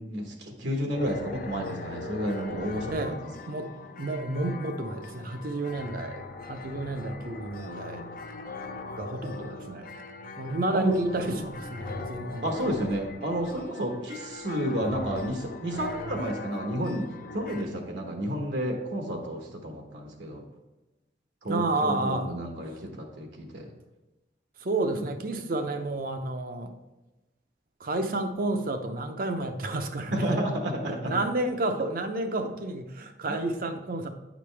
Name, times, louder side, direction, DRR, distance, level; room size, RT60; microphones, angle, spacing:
voice 1, 0.0-3.3 10.7-11.0 12.4-20.4 21.4-23.7 24.9-25.0 30.1-31.1 33.3-33.4, equal, 80° right, 2 dB, 1.1 m, -31 dB
sound 1, 0.9-17.6, left 3 dB, 50° left, 0.5 m, -40 dB
voice 2, 3.5-8.1 8.9-9.9 10.4-12.7 21.5-22.3 24.6-26.7 27.8-30.4 30.9-34.1, right 2 dB, 50° right, 7 dB, 0.6 m, -31 dB
9.2 x 5.1 x 3.3 m, 1.1 s
head